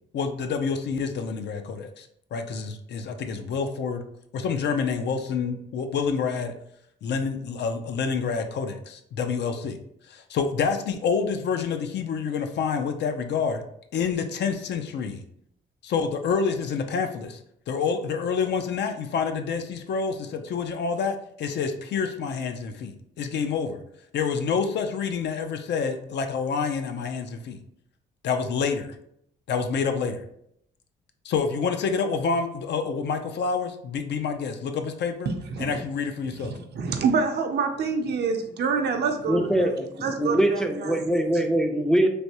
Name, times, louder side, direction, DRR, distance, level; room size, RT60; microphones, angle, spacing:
voice 1, 0.1-4.0 4.3-6.5 7.0-9.8 10.1-13.6 13.9-15.2 15.8-17.4 17.7-23.8 24.1-27.6 28.2-28.9 29.5-30.2 31.2-35.3 35.6-36.6, left 5 dB, 60° left, 7 dB, 0.5 m, -28 dB
voice 2, 36.4-39.7 40.0-41.2, right 5 dB, 55° right, 4 dB, 0.6 m, -27 dB
voice 3, 39.3-42.1, right 1 dB, 5° left, 5 dB, 0.4 m, -23 dB
3.3 x 2.6 x 2.8 m, 0.72 s
cardioid pair, 90°, 20 cm